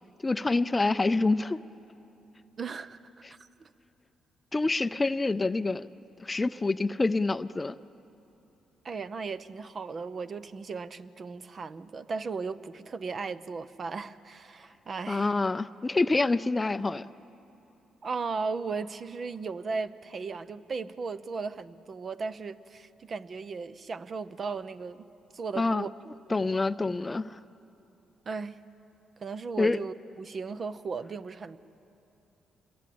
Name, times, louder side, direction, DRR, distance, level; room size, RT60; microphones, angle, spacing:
voice 1, 0.2-1.6 3.2-3.3 4.5-5.9 6.2-7.8 15.1-17.1 25.6-25.9 26.3-27.4 29.6-29.8, left 3 dB, 20° left, 14 dB, 0.5 m, -27 dB
voice 2, 2.6-3.0 3.6-3.7 8.8-15.3 18.0-25.0 25.3-25.9 26.3-26.4 28.3-28.6 29.2-31.6, right 4 dB, 45° right, 13 dB, 0.7 m, -36 dB
27.0 x 22.0 x 8.6 m, 3.0 s
cardioid pair, 90°, 0 cm